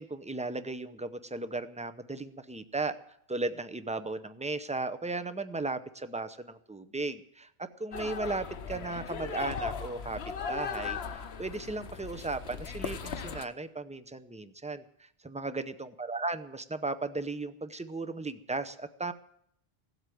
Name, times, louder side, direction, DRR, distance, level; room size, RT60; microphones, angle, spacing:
voice 1, 0.0-3.0 3.3-10.2 10.5-19.1, right 3 dB, 10° right, 10 dB, 0.5 m, -36 dB
sound 1, 7.9-13.4, left 6 dB, 90° left, 1.1 m, -38 dB
16.5 x 8.1 x 9.2 m, 0.74 s
omnidirectional pair, 1.0 m